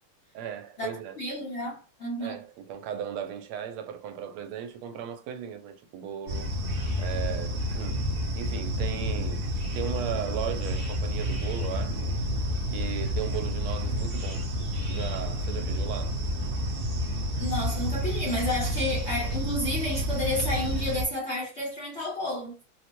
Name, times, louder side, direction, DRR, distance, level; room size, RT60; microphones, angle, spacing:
voice 1, 0.3-1.2 2.2-6.5 7.0-8.0 8.4-9.4 9.7-12.1 12.7-14.4 14.9-16.5, right 9 dB, 85° right, 1.5 m, -36 dB
voice 2, 1.2-2.4 17.4-22.6, left 1 dB, 50° left, 0.8 m, -31 dB
sound 1, 6.3-21.0, equal, 40° right, 0.8 m, -30 dB
4.3 x 2.1 x 3.0 m
omnidirectional pair, 2.3 m